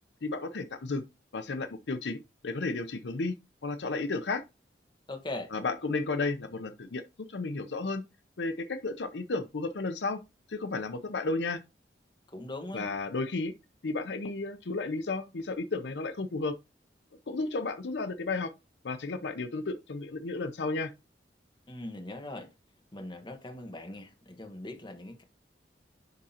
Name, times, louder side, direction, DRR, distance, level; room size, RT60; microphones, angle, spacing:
voice 1, 0.2-1.0 1.3-3.3 3.6-4.4 5.5-7.0 7.3-8.0 8.4-10.2 10.5-11.6 12.7-13.5 13.8-16.6 17.3-18.5 18.8-20.9, left 3 dB, 75° left, 0.6 m, -33 dB
voice 2, 5.1-5.5 12.3-12.9 21.7-22.5 22.9-25.2, left 2 dB, 25° left, 1.3 m, -40 dB
10.5 x 3.7 x 2.8 m
head